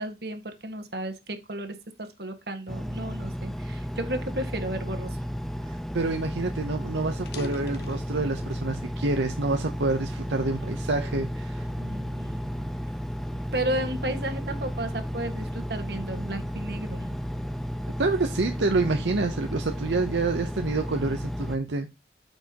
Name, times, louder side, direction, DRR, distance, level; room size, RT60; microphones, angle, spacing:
voice 1, 0.0-5.2 11.8-12.7 13.5-17.1, right 1 dB, 65° right, 1.7 m, -33 dB
Engine, 2.7-21.6, equal, ahead, 0.6 m, -33 dB
voice 2, 5.6-11.7 18.0-21.9, right 3 dB, 85° right, 0.8 m, -27 dB
sound 1, 7.2-8.7 9.3-10.5 11.1-11.4 12.0-14.0, left 3 dB, 65° left, 1.3 m, -45 dB
9.0 x 7.3 x 2.9 m
head